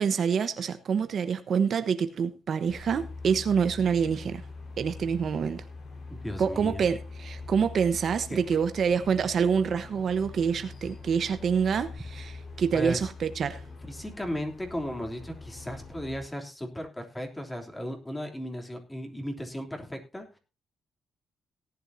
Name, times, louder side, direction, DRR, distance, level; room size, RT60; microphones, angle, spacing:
voice 1, 0.0-4.5 4.8-5.6 6.4-13.6, right 6 dB, 55° right, 1.0 m, -27 dB
sound 1, 2.7-16.3, left 3 dB, 50° left, 4.5 m, -43 dB
voice 2, 6.1-6.8 8.3-8.4 12.7-13.1 13.9-20.4, equal, 10° left, 3.2 m, -36 dB
18.0 x 11.0 x 2.7 m
cardioid pair, 120°, 0 cm